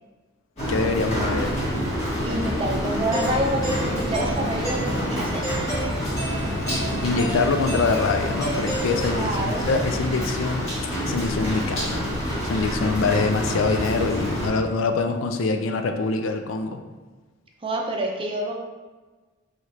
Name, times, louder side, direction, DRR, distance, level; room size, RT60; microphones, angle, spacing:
Rain, 0.6-14.5, equal, 35° left, 1.5 m, -27 dB
voice 1, 0.7-1.6 7.0-10.7 11.1-12.1 12.4-16.8, left 4 dB, 80° left, 6 dB, 0.4 m, -24 dB
voice 2, 2.2-5.6 9.1-9.7 17.6-18.6, right 1 dB, 25° right, 1 dB, 0.5 m, -27 dB
Doorbell, 3.1-9.4, right 2 dB, 20° left, 1.3 m, -34 dB
4.7 x 3.1 x 2.8 m, 1.3 s
head